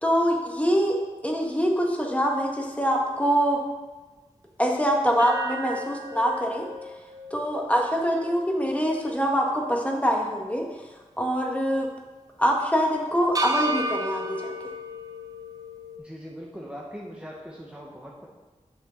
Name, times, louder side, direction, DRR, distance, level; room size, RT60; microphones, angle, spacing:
voice 1, 0.0-1.0 1.2-3.6 4.6-6.6 7.3-10.6 11.2-11.9 12.4-14.5, equal, 10° left, 0 dB, 1.7 m, -24 dB
sound 1, 5.2-9.5 9.8-9.9 13.3-16.0, right 1 dB, 30° right, 0.9 m, -34 dB
voice 2, 16.0-18.3, equal, 10° right, -4 dB, 1.4 m, -40 dB
8.4 x 6.2 x 4.0 m, 1.3 s
cardioid pair, 40°, 13 cm